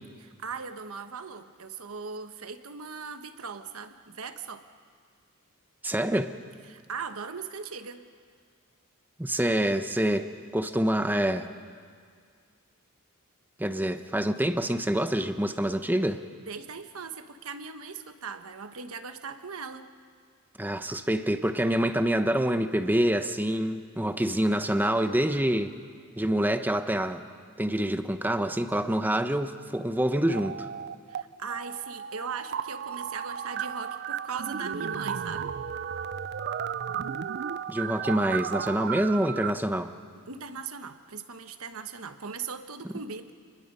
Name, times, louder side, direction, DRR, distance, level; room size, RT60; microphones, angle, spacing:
voice 1, 0.2-4.6 6.7-8.1 16.5-19.9 31.1-35.6 40.3-43.3, right 5 dB, 75° right, 9 dB, 1.2 m, -39 dB
voice 2, 5.8-6.3 9.2-11.5 13.6-16.2 20.6-25.8 26.2-27.2 27.6-30.7 37.7-39.9, right 1 dB, 10° right, 9 dB, 0.8 m, -26 dB
sound 1, 30.3-31.2 31.5-39.5, right 8 dB, 50° right, 0.5 m, -34 dB
28.5 x 21.0 x 5.5 m, 2.1 s
head